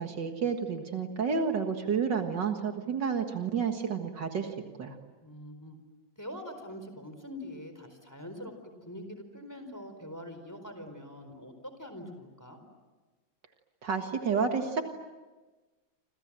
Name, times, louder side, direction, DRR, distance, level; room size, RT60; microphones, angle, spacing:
voice 1, 0.0-4.5 4.8-5.0 13.8-14.8, right 6 dB, 65° right, 5 dB, 2.3 m, -30 dB
voice 2, 5.2-5.8 6.2-8.5 8.9-12.6, left 1 dB, 10° left, 7 dB, 4.3 m, -44 dB
29.5 x 26.5 x 7.5 m, 1.2 s
omnidirectional pair, 2.1 m